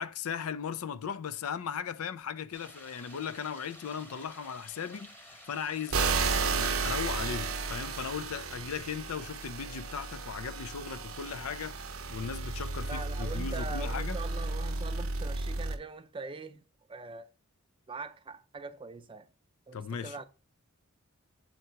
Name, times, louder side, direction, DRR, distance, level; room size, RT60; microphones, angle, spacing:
voice 1, 0.0-14.2 19.7-20.2, left 7 dB, 85° left, 0.4 m, -37 dB
sound 1, 2.5-7.7, equal, 10° left, 0.9 m, -52 dB
sound 2, 5.9-15.8, right 4 dB, 70° right, 0.7 m, -33 dB
voice 2, 12.9-16.6 16.9-17.3 17.9-19.3 19.7-20.2, right 3 dB, 25° right, 0.4 m, -42 dB
7.7 x 2.8 x 4.4 m
head